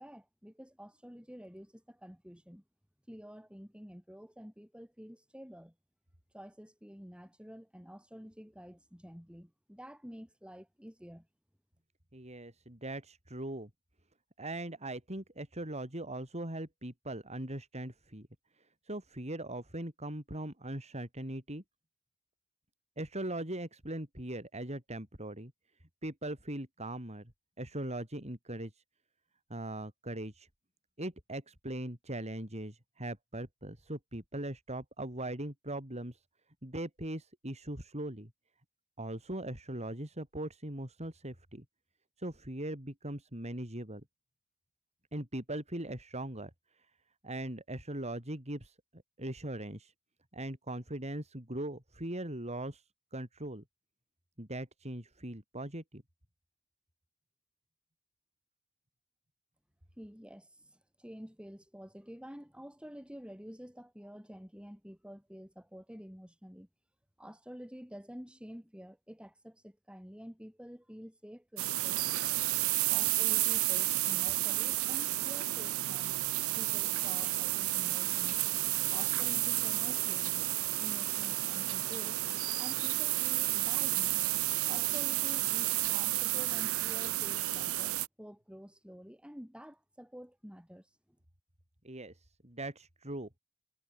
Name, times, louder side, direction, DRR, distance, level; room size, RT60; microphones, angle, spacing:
voice 1, 0.0-2.6 3.1-5.7 6.3-11.3 60.0-66.7 67.2-72.3 72.9-76.3 76.6-78.4 78.9-80.4 80.7-82.2 82.6-84.2 84.7-90.9, equal, 5° right, 7.9 m, -49 dB
voice 2, 12.1-13.7 14.4-18.3 18.6-21.6 23.0-25.5 26.0-27.3 27.6-28.8 29.5-30.5 31.0-36.2 36.6-38.3 39.0-41.6 42.2-44.0 45.1-46.5 46.8-46.9 47.2-49.9 50.3-53.6 54.4-56.0 91.8-93.3, right 1 dB, 30° right, 6.2 m, -40 dB
sound 1, 71.6-88.1, right 16 dB, 75° right, 0.9 m, -31 dB
head